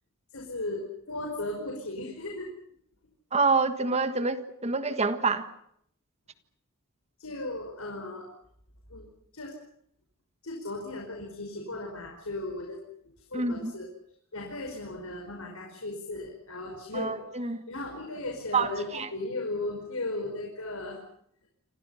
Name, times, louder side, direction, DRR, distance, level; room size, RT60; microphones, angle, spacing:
voice 1, 0.3-2.5 7.2-8.3 8.9-9.1 9.3-9.5 10.4-12.8 13.3-13.9 14.3-21.0, left 2 dB, 90° left, 5.4 m, -36 dB
voice 2, 3.3-5.5 13.3-13.7 16.9-17.6 18.5-19.1, right 4 dB, 30° right, 1.6 m, -27 dB
29.0 x 26.5 x 5.8 m
head